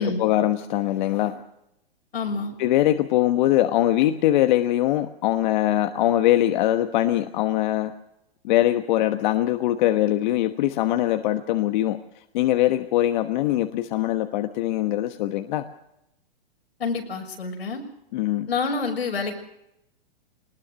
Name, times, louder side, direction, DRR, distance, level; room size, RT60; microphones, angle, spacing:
voice 1, 0.0-1.4 2.6-7.9 8.4-12.0 12.3-15.6 18.1-18.5, left 14 dB, 50° left, 8 dB, 1.2 m, -22 dB
voice 2, 2.1-2.5 16.8-17.8 18.5-19.3, left 4 dB, 85° left, 2 dB, 6.2 m, -27 dB
21.0 x 20.0 x 6.3 m, 0.83 s
hypercardioid pair, 125°, 30 cm